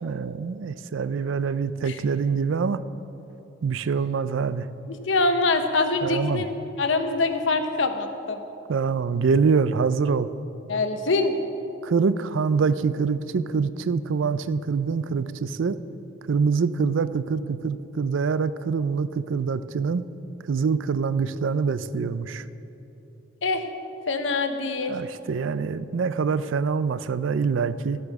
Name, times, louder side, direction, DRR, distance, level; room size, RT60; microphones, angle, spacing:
voice 1, 0.0-2.8 3.6-4.7 6.0-6.4 8.7-10.3 11.8-15.8 16.3-20.0 20.5-22.4 24.9-28.0, right 5 dB, 80° right, 15 dB, 0.4 m, -25 dB
voice 2, 4.9-8.4 10.7-11.3 23.4-23.7 24.1-24.9, left 3 dB, 70° left, 7 dB, 0.9 m, -24 dB
12.5 x 8.4 x 5.9 m, 3.0 s
head